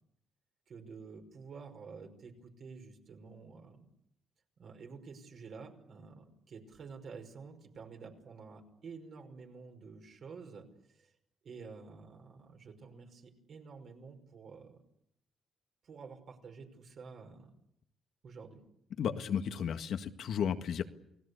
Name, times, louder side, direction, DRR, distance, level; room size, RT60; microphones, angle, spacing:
voice 1, 0.7-3.9 4.6-11.1 11.4-14.8 15.8-17.5 18.2-18.6, right 5 dB, 55° right, 4 dB, 5.6 m, -50 dB
voice 2, 19.0-20.8, left 8 dB, 70° left, 8 dB, 1.8 m, -33 dB
29.0 x 19.0 x 8.5 m, 0.77 s
cardioid pair, 90°, 0 cm